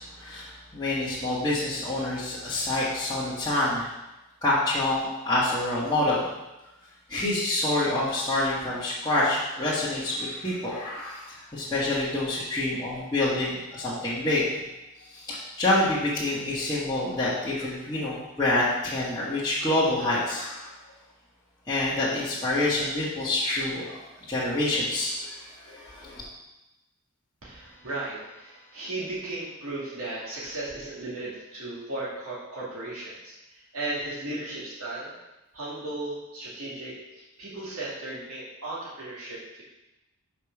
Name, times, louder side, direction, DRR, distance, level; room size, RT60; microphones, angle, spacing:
voice 1, 0.0-3.9 4.4-6.3 7.1-14.4 15.0-20.7 21.7-24.0 24.3-26.2, left 2 dB, 15° left, -12 dB, 1.6 m, -27 dB
voice 2, 27.4-35.1 35.5-37.0 37.4-39.6, right 2 dB, 75° right, -7 dB, 2.3 m, -36 dB
5.8 x 5.0 x 6.0 m, 0.99 s
head